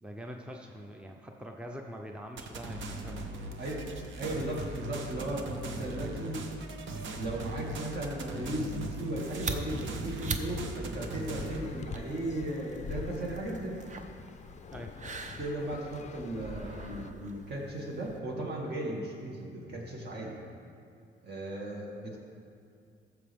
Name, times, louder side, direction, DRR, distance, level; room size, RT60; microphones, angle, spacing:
voice 1, 0.0-3.6 14.7-15.0, equal, 5° right, 2 dB, 0.6 m, -44 dB
sound 1, 2.4-11.6, right 2 dB, 75° right, 1.0 m, -39 dB
voice 2, 4.2-6.4 7.2-13.8 15.4-20.4 21.2-22.2, right 1 dB, 55° right, -2 dB, 2.3 m, -36 dB
sound 2, 9.0-18.2, right 3 dB, 40° right, 0.8 m, -43 dB
sound 3, 11.3-17.1, left 6 dB, 35° left, 0.4 m, -45 dB
14.0 x 6.9 x 3.6 m, 2.4 s
cardioid pair, 90°, 20 cm